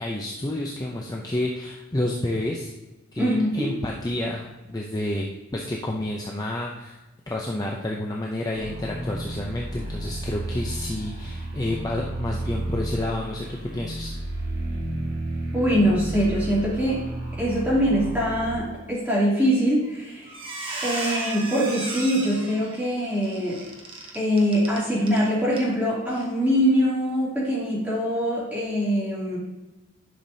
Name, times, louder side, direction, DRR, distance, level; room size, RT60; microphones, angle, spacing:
voice 1, 0.0-2.7 3.1-7.0 7.3-14.1, left 1 dB, 20° left, -1 dB, 0.5 m, -30 dB
voice 2, 3.2-3.7 15.5-17.0 17.3-20.4 20.8-23.6 24.1-29.4, equal, 10° right, -8 dB, 2.6 m, -23 dB
sound 1, 8.5-18.6, right 1 dB, 45° right, 1.6 m, -32 dB
Squeak, 19.7-20.0 20.3-25.2 25.5-25.7 26.1-26.3, right 2 dB, 25° right, 0.9 m, -35 dB
10.5 x 5.8 x 2.7 m, 1.1 s
head